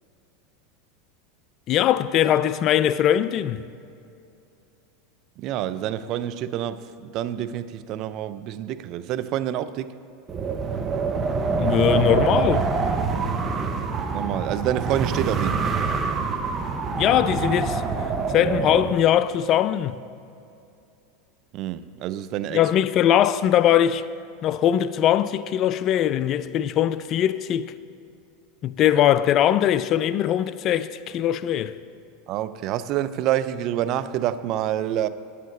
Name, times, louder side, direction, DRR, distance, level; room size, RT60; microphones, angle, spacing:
voice 1, 1.7-3.6 11.5-12.7 17.0-17.8 18.3-20.0 22.5-24.0 24.4-27.7 28.6-31.8, left 11 dB, 45° left, 0.3 m, -21 dB
voice 2, 5.4-9.9 14.1-15.6 21.5-22.6 29.0-29.1 32.3-35.1, right 12 dB, 50° right, 0.4 m, -27 dB
Wind, 10.3-19.0, right 4 dB, 30° right, 0.8 m, -25 dB
9.2 x 8.4 x 4.3 m
hypercardioid pair, 100°, 0 cm